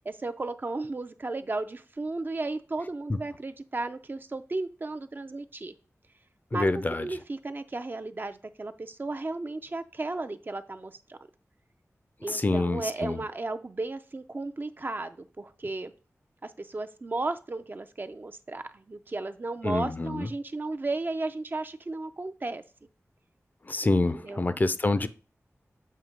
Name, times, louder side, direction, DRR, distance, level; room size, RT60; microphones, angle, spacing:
voice 1, 0.1-5.7 6.5-6.7 7.0-11.2 12.2-15.9 16.4-22.6 23.8-24.5, right 2 dB, 40° right, 0.4 m, -34 dB
voice 2, 6.5-7.1 12.3-13.2 19.6-20.3 23.7-25.1, left 2 dB, 35° left, 0.5 m, -27 dB
7.5 x 2.8 x 5.1 m
wide cardioid pair, 80°, 5 cm